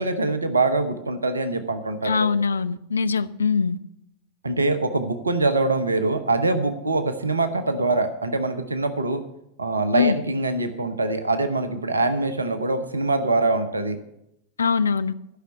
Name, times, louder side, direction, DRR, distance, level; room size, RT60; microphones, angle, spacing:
voice 1, 0.0-2.3 4.4-9.2 9.6-14.0, right 2 dB, 75° right, 10 dB, 0.9 m, -24 dB
voice 2, 2.0-3.8 9.9-10.2 14.6-15.1, left 5 dB, 75° left, 14 dB, 0.4 m, -22 dB
11.5 x 5.8 x 8.2 m, 0.81 s
figure-of-eight pair, 90°, 0 cm